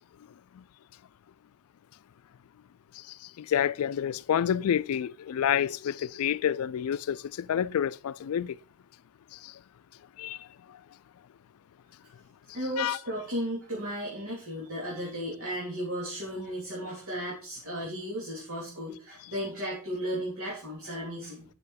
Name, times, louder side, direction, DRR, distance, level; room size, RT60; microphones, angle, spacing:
voice 1, 3.4-8.6 9.3-9.5 10.2-10.4 12.8-13.0, left 9 dB, 70° left, 0.3 m, -28 dB
voice 2, 12.5-21.5, equal, 70° right, 3.2 m, -35 dB
6.8 x 6.3 x 5.0 m
head